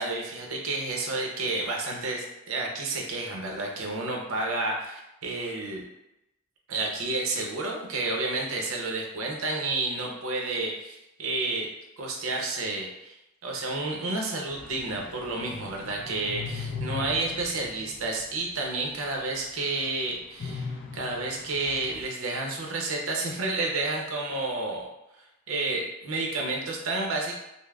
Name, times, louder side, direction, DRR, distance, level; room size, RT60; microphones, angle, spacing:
voice 1, 0.0-5.8 6.7-11.7 12.0-13.1 13.4-24.9 25.5-27.4, right 2 dB, 80° right, 0 dB, 0.7 m, -30 dB
sound 1, 14.5-18.8 19.2-19.3 20.4-22.0, left 5 dB, 60° left, 0.4 m, -39 dB
5.3 x 2.0 x 2.3 m, 0.90 s
head